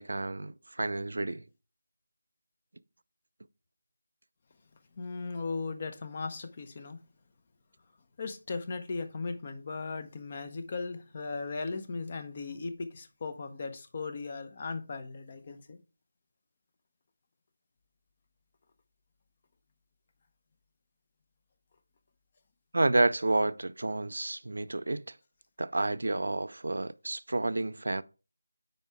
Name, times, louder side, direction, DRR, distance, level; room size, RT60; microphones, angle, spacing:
voice 1, 0.0-1.4 22.7-25.2 25.6-28.0, right 2 dB, 65° right, 0.4 m, -30 dB
voice 2, 5.0-7.0 8.2-15.8, left 4 dB, 35° left, 0.8 m, -37 dB
9.4 x 4.5 x 3.5 m
figure-of-eight pair, 160°, 0 cm